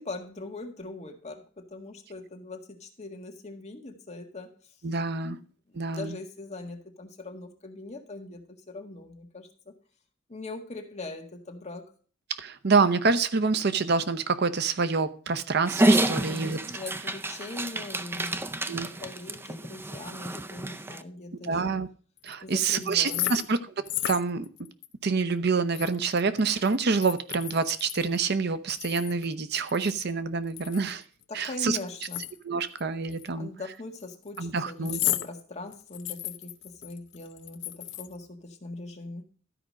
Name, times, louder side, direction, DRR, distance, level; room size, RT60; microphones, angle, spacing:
voice 1, 0.0-4.5 5.2-9.7 10.3-11.8 12.7-12.8 16.0-21.8 22.4-23.4 31.3-32.2 33.3-39.2, left 2 dB, 35° left, 3 dB, 1.7 m, -41 dB
voice 2, 4.8-5.4 5.8-6.1 12.3-16.6 18.7-18.9 21.4-21.9 22.2-24.5 25.0-31.0 31.3-31.8 32.4-33.5 34.4-35.0, right 4 dB, 55° right, 12 dB, 0.7 m, -27 dB
Dog, 15.7-21.0, right 1 dB, 10° right, 0.5 m, -28 dB
sound 1, 22.2-23.6 23.8-24.9 25.2-25.3 25.7-28.2 28.8-30.1 30.5-32.8 33.1-33.3 34.0-34.4 34.8-35.3 35.7-38.2, left 13 dB, 65° left, 0.6 m, -34 dB
13.0 x 5.0 x 6.2 m, 0.41 s
head